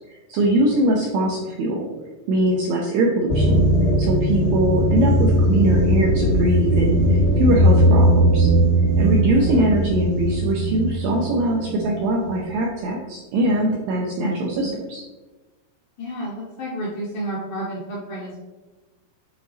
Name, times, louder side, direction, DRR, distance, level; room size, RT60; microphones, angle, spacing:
voice 1, 0.0-1.8 2.3-3.6 4.0-8.5 9.0-15.0, right 1 dB, 85° right, -1 dB, 2.0 m, -22 dB
sound 1, 3.3-12.6, equal, 45° left, 0.8 m, -19 dB
voice 2, 7.8-8.2 9.4-9.6 14.2-14.7 16.0-18.4, right 1 dB, 75° left, -5 dB, 2.0 m, -31 dB
9.2 x 3.9 x 3.2 m, 1.2 s
omnidirectional pair, 5.0 m